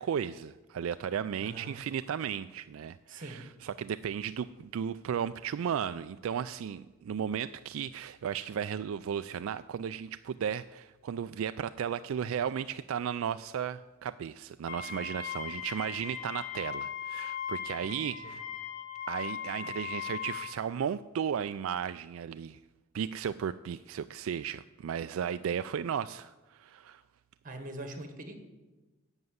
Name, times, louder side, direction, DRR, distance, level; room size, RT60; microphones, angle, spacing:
voice 1, 0.0-18.4 19.1-22.6 22.9-27.0, right 8 dB, 75° right, 12 dB, 0.3 m, -35 dB
voice 2, 1.4-1.8 3.1-3.5 18.2-18.4 27.4-28.4, right 2 dB, 40° right, 6 dB, 1.6 m, -43 dB
Wind instrument woodwind instrument, 14.7-20.6, left 8 dB, 75° left, 1.7 m, -38 dB
11.0 x 8.0 x 7.9 m, 1.1 s
head